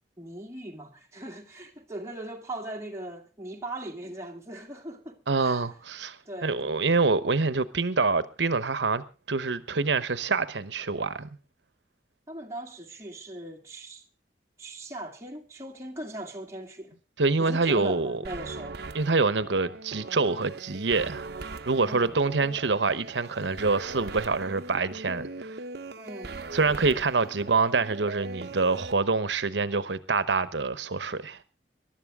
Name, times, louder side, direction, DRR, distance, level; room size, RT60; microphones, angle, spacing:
voice 1, 0.2-5.6 6.3-6.6 12.3-14.0 14.6-17.0 17.4-18.8 21.8-22.2 26.0-26.4, right 1 dB, 15° right, 2.0 m, -39 dB
voice 2, 5.3-6.2 6.4-11.3 17.2-18.2 18.9-21.3 21.7-25.6 26.5-31.4, right 4 dB, 90° right, 1.0 m, -26 dB
sound 1, 18.2-28.9, right 3 dB, 65° right, 0.9 m, -40 dB
22.0 x 12.0 x 3.6 m
head